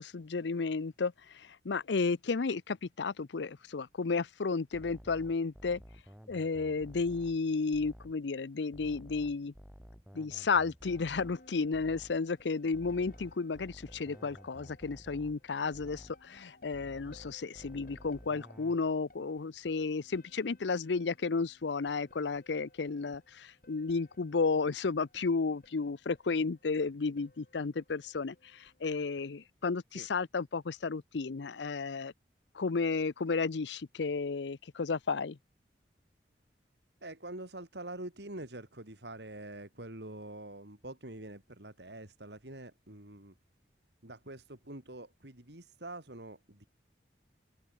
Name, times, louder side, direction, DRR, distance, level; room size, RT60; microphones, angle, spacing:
voice 1, 0.0-5.8 6.3-9.5 10.1-32.1 32.5-35.4, left 4 dB, 85° left, 0.6 m, -33 dB
sound 1, 4.7-8.2 8.7-12.3 12.7-16.2 16.7-18.8, equal, 5° right, 3.9 m, -53 dB
sound 2, 10.8-29.5, left 1 dB, 50° left, 3.8 m, -62 dB
voice 2, 37.0-43.3 44.0-46.7, right 1 dB, 75° right, 3.8 m, -45 dB
open air
head